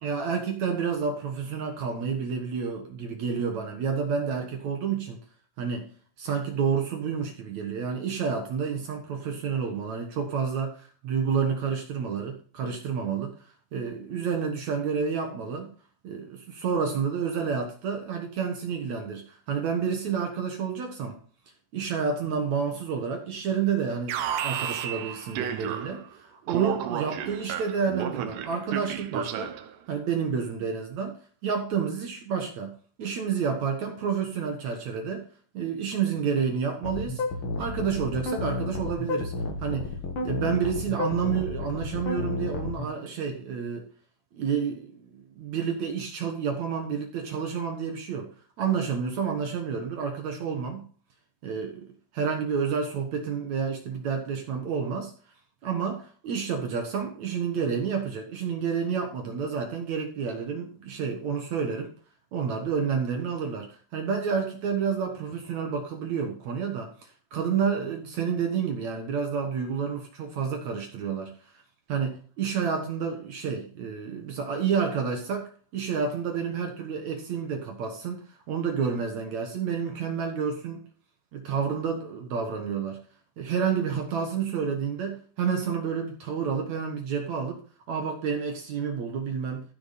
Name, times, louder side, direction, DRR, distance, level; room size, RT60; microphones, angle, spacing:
voice 1, 0.0-5.2 5.6-5.9 6.2-13.3 13.7-15.7 16.0-21.2 21.7-29.5 29.9-32.7 33.0-35.3 35.5-37.2 37.6-39.3 39.6-43.9 44.3-48.3 48.6-50.9 51.4-51.9 52.1-55.1 55.6-61.9 62.3-66.9 67.3-71.3 71.9-78.2 78.5-80.8 81.3-83.0 83.4-87.6 87.9-89.6, right 6 dB, 60° right, 2.1 m, -29 dB
Alarm, 24.1-26.1 26.5-29.7, right 9 dB, 80° right, 3.1 m, -32 dB
sound 1, 36.8-42.9, left 3 dB, 55° left, 1.5 m, -31 dB
15.0 x 6.0 x 4.2 m
omnidirectional pair, 4.9 m